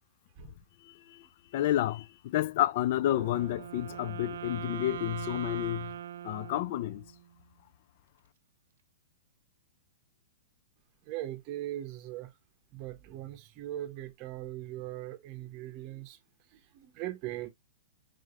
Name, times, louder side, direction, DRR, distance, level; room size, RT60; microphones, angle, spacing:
voice 1, 0.9-1.3 1.5-5.9 6.2-7.0, left 14 dB, 50° left, 0.3 m, -30 dB
Wind instrument woodwind instrument, 3.1-7.3, right 10 dB, 75° right, 0.5 m, -41 dB
voice 2, 11.1-12.3 12.7-16.2 16.5-17.5, right 14 dB, 35° right, 0.7 m, -40 dB
4.9 x 3.7 x 2.4 m
hypercardioid pair, 140°, 0 cm